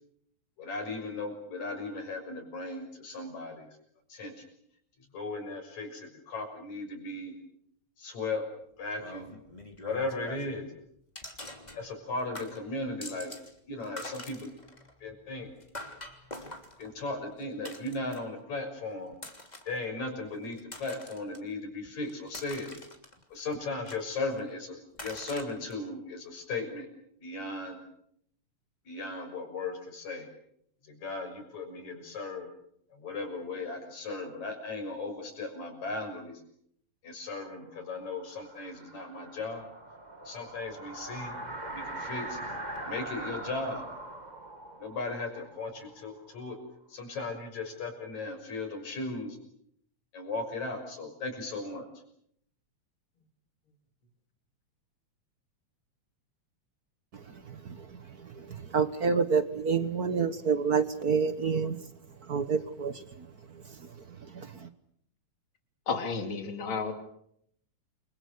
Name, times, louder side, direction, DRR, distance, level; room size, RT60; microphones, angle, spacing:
voice 1, 0.6-3.7 4.1-4.4 5.1-7.3 8.0-8.4 8.8-9.3 9.8-10.7 11.8-13.3 13.7-14.5 15.0-15.5 16.8-19.1 19.7-22.7 23.3-26.9 27.2-27.8 28.9-30.3 30.9-32.5 32.9-36.3 37.0-39.7 40.2-41.4 41.6-42.4 42.8-43.8 44.8-46.6 46.9-49.4 50.1-51.9, left 3 dB, 70° left, 4 dB, 7.7 m, -37 dB
sound 1, 8.9-10.7 11.2-12.1 12.3-13.5 13.8-18.4 19.1-19.8 20.3-21.4 21.9-23.4 23.9-24.5 24.9-25.7, left 1 dB, 15° left, 3.1 m, -45 dB
sound 2, 37.9-46.6, right 2 dB, 15° right, 2.0 m, -42 dB
voice 2, 58.7-61.8 62.3-63.0 64.3-64.7, right 5 dB, 50° right, 11 dB, 1.1 m, -27 dB
voice 3, 65.9-66.9, left 5 dB, 45° left, 5 dB, 3.7 m, -32 dB
29.0 x 26.0 x 6.7 m, 0.71 s
omnidirectional pair, 3.3 m